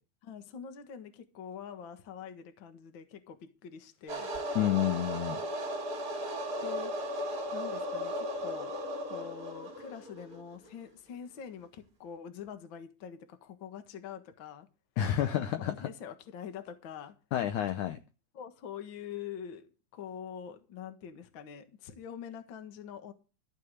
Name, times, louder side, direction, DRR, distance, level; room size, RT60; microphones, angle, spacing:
voice 1, 0.2-4.4 6.6-7.0 7.5-8.7 9.1-14.7 15.3-17.1 17.7-17.8 18.3-23.1, left 8 dB, 50° left, 1.5 m, -45 dB
sound 1, 4.1-10.7, equal, 25° right, 2.6 m, -36 dB
voice 2, 4.6-5.4 15.0-15.9 17.3-18.0, left 11 dB, 75° left, 1.9 m, -29 dB
14.0 x 5.7 x 8.0 m
omnidirectional pair, 4.3 m